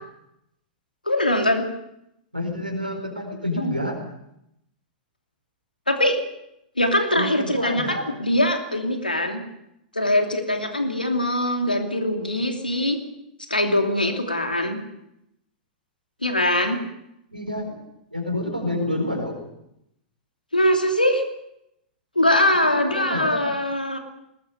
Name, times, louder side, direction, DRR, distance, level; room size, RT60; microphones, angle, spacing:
voice 1, 1.1-1.6 5.9-6.2 6.8-9.4 9.9-13.0 13.5-14.8 16.2-16.8 20.5-21.2 22.1-24.0, left 1 dB, 85° left, 4 dB, 2.7 m, -22 dB
voice 2, 2.3-4.0 7.1-8.0 17.3-17.8 18.1-19.4 22.6-23.5, left 1 dB, 90° right, 1 dB, 4.6 m, -28 dB
20.5 x 20.0 x 6.9 m, 0.81 s
figure-of-eight pair, 100°, 5 cm